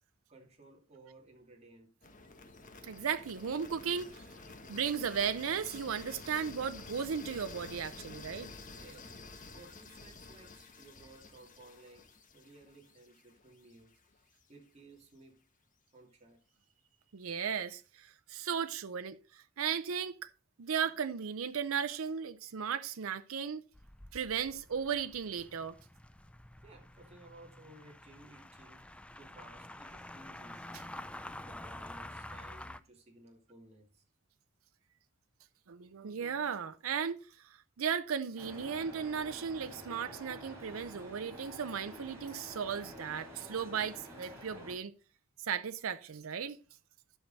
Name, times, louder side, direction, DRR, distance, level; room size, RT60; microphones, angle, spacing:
voice 1, 0.3-1.9 8.7-9.3 9.5-15.4 15.9-16.4 26.6-30.8 31.4-34.0, right 2 dB, 30° right, 2.5 m, -57 dB
sound 1, 2.0-13.9, left 3 dB, 40° left, 1.3 m, -50 dB
voice 2, 2.8-4.2 4.7-8.5 17.1-20.3 20.6-23.6 24.1-25.8 35.7-44.9 45.4-46.6, right 7 dB, 85° right, 0.6 m, -36 dB
sound 2, 23.7-32.8, left 1 dB, 5° left, 0.4 m, -48 dB
sound 3, 38.4-44.8, equal, 15° right, 4.5 m, -49 dB
12.0 x 6.0 x 4.0 m
head